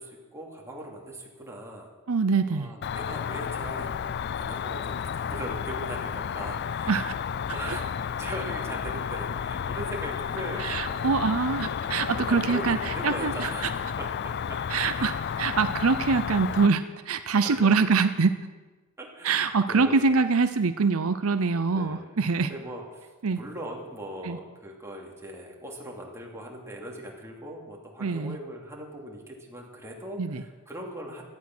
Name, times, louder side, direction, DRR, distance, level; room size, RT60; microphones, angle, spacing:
voice 1, 0.0-1.9 2.5-4.0 4.4-7.1 7.5-11.1 12.2-14.6 14.9-15.5 17.3-17.8 19.0-20.1 21.7-31.2, right 1 dB, 15° right, -1 dB, 2.9 m, -40 dB
voice 2, 2.1-2.7 6.9-7.1 10.6-13.5 14.7-18.4 19.2-22.5 23.2-23.4 24.2-24.4 28.0-28.4 30.2-30.4, right 4 dB, 75° right, 10 dB, 0.7 m, -24 dB
Cricket, 2.8-16.7, left 7 dB, 50° left, 0.4 m, -32 dB
17.0 x 13.0 x 6.2 m, 1.3 s
head